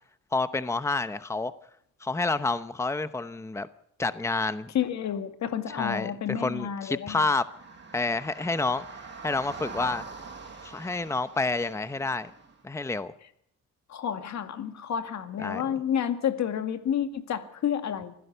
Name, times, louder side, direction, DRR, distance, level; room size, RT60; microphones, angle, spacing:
voice 1, 0.3-1.5 2.0-3.7 4.0-4.7 5.7-7.5 7.9-8.8 9.2-10.0 10.6-12.3 12.6-13.1 15.4-15.6, left 3 dB, 10° left, 0.9 m, -29 dB
voice 2, 4.7-7.3 13.9-18.2, left 9 dB, 65° left, 2.2 m, -30 dB
sound 1, 7.4-12.6, right 4 dB, 35° right, 6.5 m, -44 dB
25.0 x 16.0 x 6.9 m
cardioid pair, 90°, 30 cm